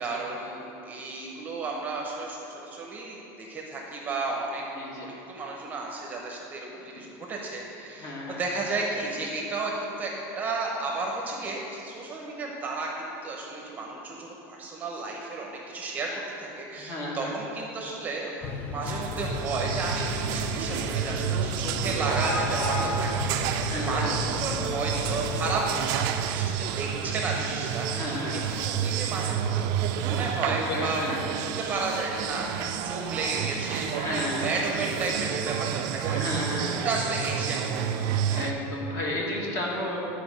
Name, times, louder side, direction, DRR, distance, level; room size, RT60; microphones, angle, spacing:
voice 1, 0.0-4.6 5.0-16.1 16.4-18.4 18.7-26.0 26.3-29.6 30.0-36.6 36.8-38.0 38.4-38.6, right 3 dB, 20° right, -1 dB, 0.8 m, -33 dB
voice 2, 4.8-5.1 6.9-7.0 8.0-8.4 16.8-17.3 20.6-20.8 23.7-24.1 27.9-28.5 30.4-31.2 33.9-34.5 36.0-36.8 38.3-40.0, left 1 dB, 40° left, -3 dB, 1.7 m, -33 dB
sound 1, 18.4-25.6, left 3 dB, 20° left, 0.5 m, -33 dB
sound 2, 18.8-38.5, right 9 dB, 50° right, 0.4 m, -30 dB
10.0 x 4.7 x 6.2 m, 2.9 s
cardioid pair, 170°, 8 cm